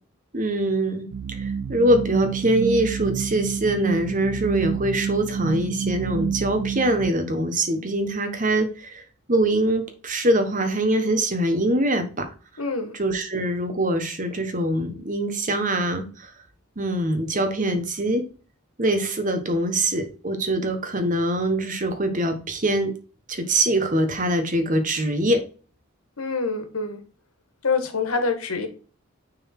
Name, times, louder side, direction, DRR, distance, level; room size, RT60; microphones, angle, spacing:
voice 1, 0.3-9.0 9.3-12.3 12.9-16.3 16.8-18.2 18.8-22.9 23.3-25.4, right 1 dB, 40° right, 7 dB, 1.3 m, -23 dB
sound 1, 1.1-7.1, right 7 dB, 80° right, 0.4 m, -28 dB
voice 2, 12.6-13.0 26.2-27.0 27.6-28.7, left 4 dB, 90° left, 6 dB, 1.6 m, -26 dB
6.4 x 4.1 x 4.4 m, 0.37 s
head